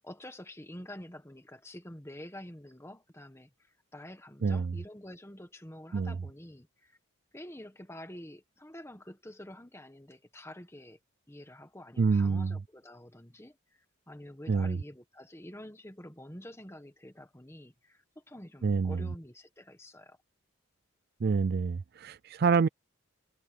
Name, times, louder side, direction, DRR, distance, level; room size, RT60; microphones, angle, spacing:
voice 1, 0.0-3.5 3.9-7.0 7.3-11.0 11.3-20.2, left 1 dB, 10° left, 1.5 m, -48 dB
voice 2, 4.4-4.7 5.9-6.1 12.0-12.6 14.5-14.8 18.6-19.1 21.2-22.7, right 5 dB, 45° right, 0.4 m, -27 dB
head